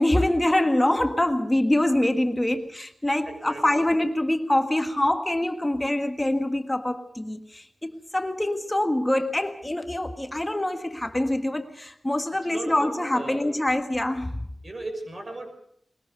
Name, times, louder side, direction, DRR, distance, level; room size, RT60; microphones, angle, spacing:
voice 1, 0.0-14.5, left 1 dB, 15° left, 6 dB, 1.6 m, -25 dB
voice 2, 3.3-3.9 12.5-13.4 14.6-15.5, right 2 dB, 40° right, 4 dB, 6.2 m, -37 dB
21.5 x 20.5 x 6.7 m, 0.69 s
wide cardioid pair, 110°, 0 cm